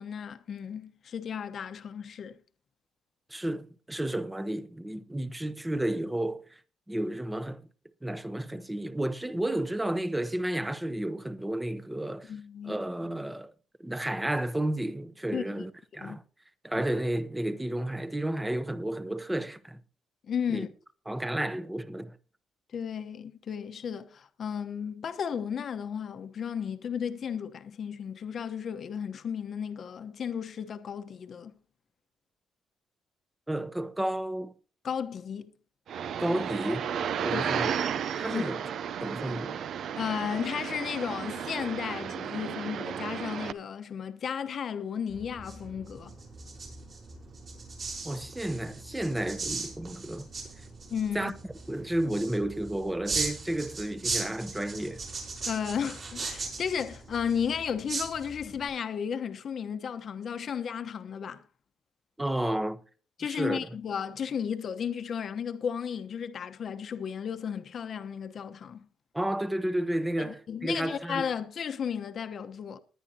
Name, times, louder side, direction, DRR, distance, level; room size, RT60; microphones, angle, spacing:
voice 1, 0.0-2.4 12.3-12.8 15.3-15.4 16.0-16.2 20.3-20.7 22.7-31.6 34.8-35.5 37.3-37.5 38.3-38.4 40.0-46.1 50.9-51.3 55.5-61.5 63.2-68.9 70.2-72.8, left 7 dB, 55° left, 1.0 m, -34 dB
voice 2, 3.3-6.6 6.9-7.6 8.0-12.3 12.6-13.5 13.8-16.2 16.6-19.8 20.5-20.7 21.1-22.2 33.5-34.5 36.2-36.9 37.2-38.7 39.0-39.6 48.0-50.3 51.1-51.3 51.7-55.0 62.2-62.8 63.2-63.6 69.1-71.3, right 1 dB, 10° right, 0.9 m, -32 dB
sound 1, 35.9-43.5, right 8 dB, 65° right, 0.6 m, -33 dB
sound 2, 45.1-58.7, right 4 dB, 50° right, 5.7 m, -38 dB
19.5 x 10.0 x 2.8 m
cardioid pair, 90°, 0 cm